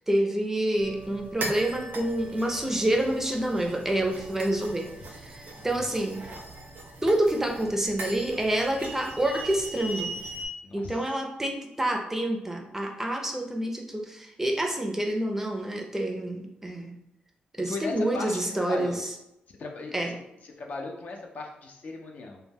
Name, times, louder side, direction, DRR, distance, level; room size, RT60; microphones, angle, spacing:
voice 1, 0.0-6.2 7.0-10.1 10.7-16.9 17.6-18.9 19.9-20.1, right 1 dB, 10° right, 2 dB, 0.4 m, -28 dB
sound 1, 0.8-10.5, right 2 dB, 70° right, 0.5 m, -40 dB
voice 2, 10.6-11.0 17.6-19.0 19.6-20.2 20.4-22.4, left 3 dB, 55° left, 2 dB, 0.4 m, -37 dB
2.1 x 2.1 x 3.3 m, 0.85 s
cardioid pair, 85°, 3 cm